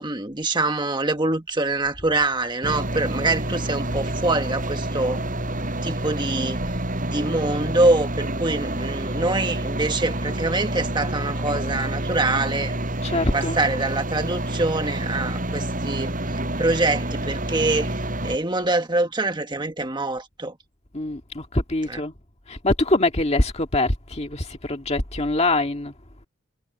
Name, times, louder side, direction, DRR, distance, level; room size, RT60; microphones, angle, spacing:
voice 1, 0.0-5.2 5.8-6.6 7.1-12.7 13.3-16.1 16.6-18.0 18.2-20.5 21.9-22.0, right 2 dB, 20° right, 1.6 m, -24 dB
sound 1, 2.6-18.4, right 1 dB, 40° right, 7.1 m, -28 dB
voice 2, 13.0-13.6 20.9-22.1 22.5-25.9, left 2 dB, 30° left, 1.9 m, -24 dB
head